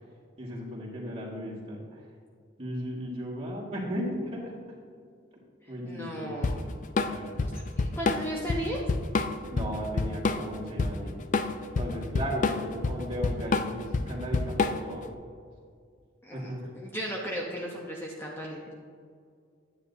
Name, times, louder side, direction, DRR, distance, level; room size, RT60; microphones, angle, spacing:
voice 1, 0.4-2.0 2.6-4.6 5.7-6.7 7.0-7.5 9.5-11.2 11.7-15.1 16.3-16.6, equal, 30° right, -4 dB, 1.7 m, -36 dB
voice 2, 5.6-6.5 7.5-8.8 16.2-18.7, equal, 10° left, -2 dB, 0.7 m, -36 dB
Drum kit / Drum, 6.4-15.0, left 3 dB, 40° left, 0.3 m, -28 dB
10.0 x 8.5 x 2.7 m, 2.2 s
head